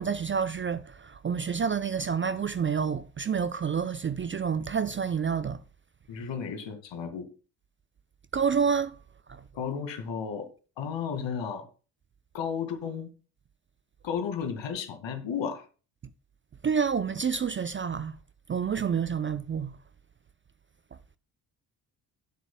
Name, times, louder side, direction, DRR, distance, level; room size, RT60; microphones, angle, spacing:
voice 1, 0.0-5.6 8.3-9.0 9.3-9.4 16.6-18.2 18.5-19.8, right 6 dB, 25° right, 0.5 m, -28 dB
voice 2, 6.1-7.3 9.5-10.5 10.8-11.7 12.3-13.1 14.0-15.7, left 7 dB, 60° left, 2.1 m, -33 dB
15.0 x 8.0 x 2.2 m
hypercardioid pair, 50°, 50 cm